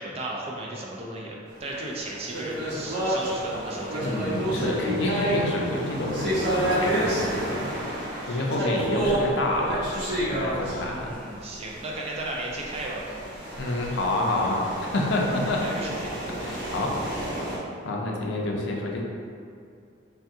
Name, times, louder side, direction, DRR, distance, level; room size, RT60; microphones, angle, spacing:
voice 1, 0.0-4.1 8.2-8.7 10.9-13.2 15.6-16.1, right 2 dB, 30° right, -2 dB, 0.4 m, -35 dB
sound 1, 1.9-11.6 12.5-17.6, right 1 dB, 55° right, 0.9 m, -29 dB
voice 2, 4.0-7.7 8.3-11.1 13.6-14.6 14.9-15.6 16.4-16.9 17.8-19.0, left 2 dB, 60° left, -1 dB, 0.4 m, -28 dB
3.5 x 2.2 x 2.7 m, 2.4 s
head